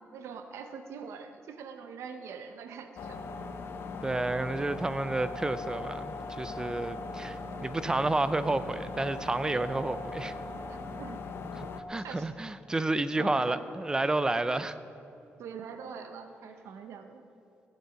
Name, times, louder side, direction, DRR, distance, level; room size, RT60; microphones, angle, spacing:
voice 1, 0.1-3.2 10.7-11.2 12.0-12.5 13.1-13.6 15.4-17.2, right 6 dB, 85° right, 7 dB, 0.7 m, -44 dB
sound 1, 3.0-11.8, left 3 dB, 60° left, 0.8 m, -39 dB
voice 2, 4.0-10.3 11.5-14.8, right 2 dB, 15° right, 13 dB, 0.5 m, -30 dB
16.5 x 8.2 x 5.7 m, 2.7 s
cardioid pair, 120°, 5 cm